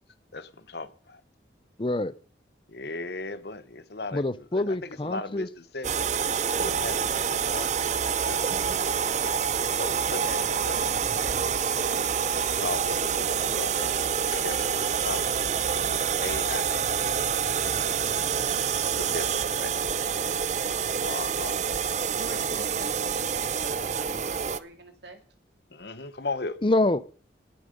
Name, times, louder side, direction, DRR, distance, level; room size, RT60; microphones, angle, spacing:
voice 1, 0.3-1.2 2.7-6.1 6.5-7.9 8.3-8.5 9.7-10.9 12.3-13.9 14.3-16.9 17.3-18.2 19.0-20.3 21.0-21.6 25.7-26.6, left 3 dB, 65° left, 1.0 m, -37 dB
voice 2, 1.8-2.1 4.1-5.5 26.6-27.0, left 2 dB, 30° left, 0.5 m, -25 dB
sound 1, 5.8-24.6, right 7 dB, 40° right, 0.5 m, -27 dB
voice 3, 22.1-25.2, right 2 dB, 75° right, 2.3 m, -46 dB
19.0 x 7.7 x 5.2 m
head